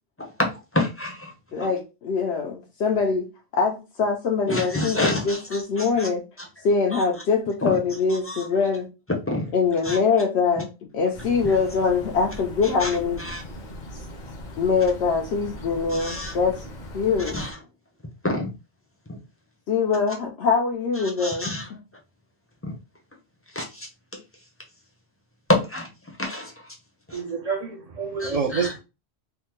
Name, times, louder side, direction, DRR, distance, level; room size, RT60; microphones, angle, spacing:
voice 1, 0.2-1.3 1.6-1.7 4.5-6.1 6.9-7.0 8.2-8.5 9.3-9.5 9.8-10.0 12.8-13.4 15.9-16.4 17.3-17.6 18.2-18.5 19.1-19.2 21.0-21.7 22.6-22.8 23.5-23.9 25.5-25.9 26.2-26.5 27.1-27.2 28.2-28.7, left 1 dB, 15° left, 0.5 m, -28 dB
voice 2, 1.5-6.2 6.6-8.9 9.5-10.7 10.9-13.2 14.6-16.6 16.9-17.4 19.7-21.6, left 5 dB, 80° left, 0.9 m, -23 dB
sound 1, 11.1-17.5, left 1 dB, 50° left, 0.7 m, -39 dB
voice 3, 27.1-28.8, right 5 dB, 45° right, 0.6 m, -27 dB
3.5 x 2.1 x 2.9 m
omnidirectional pair, 1.1 m